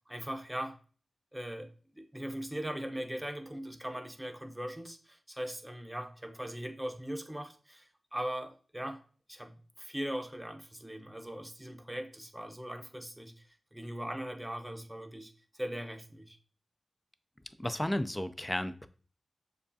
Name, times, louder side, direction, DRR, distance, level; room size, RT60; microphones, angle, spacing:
voice 1, 0.1-0.8 1.3-9.0 9.3-16.4, equal, 10° right, 5 dB, 0.7 m, -40 dB
voice 2, 17.6-18.9, left 1 dB, 15° left, 11 dB, 0.4 m, -33 dB
6.9 x 2.3 x 2.7 m, 0.40 s
cardioid pair, 50°, 0 cm